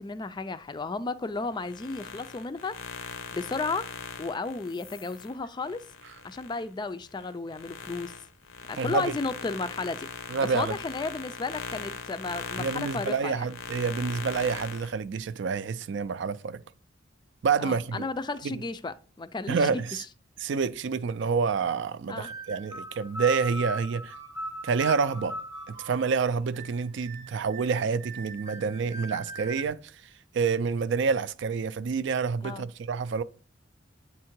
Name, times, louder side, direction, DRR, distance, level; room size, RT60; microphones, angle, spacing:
voice 1, 0.0-2.7 3.3-3.9 4.2-5.8 6.2-8.1 8.7-10.1 10.4-13.5 17.6-20.0 22.1-22.3 32.4-32.7, left 3 dB, 20° left, 0.3 m, -33 dB
sound 1, 1.5-6.6 7.1-14.9, left 5 dB, 90° left, 0.7 m, -40 dB
voice 2, 8.8-9.1 10.3-10.8 12.6-16.6 17.4-18.1 18.4-18.6 19.5-20.0 20.4-24.2 24.6-25.4 25.7-30.0 30.3-33.2, right 5 dB, 65° right, 0.4 m, -28 dB
sound 2, 22.1-29.7, right 1 dB, 20° right, 0.8 m, -39 dB
8.5 x 3.6 x 4.4 m
head